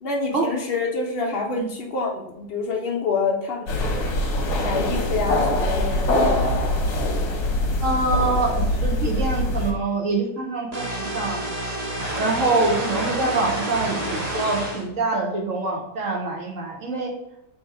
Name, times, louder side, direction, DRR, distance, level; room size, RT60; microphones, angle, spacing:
voice 1, 0.0-3.7 4.6-6.6, left 4 dB, 85° left, 0 dB, 0.5 m, -27 dB
sound 1, 3.7-9.7, left 1 dB, 60° left, 1.1 m, -23 dB
voice 2, 7.8-11.4 12.2-17.1, right 3 dB, 60° right, 1 dB, 0.9 m, -25 dB
sound 2, 10.7-14.9, right 1 dB, 75° right, 0.3 m, -29 dB
3.3 x 2.9 x 4.5 m, 0.80 s
omnidirectional pair, 1.8 m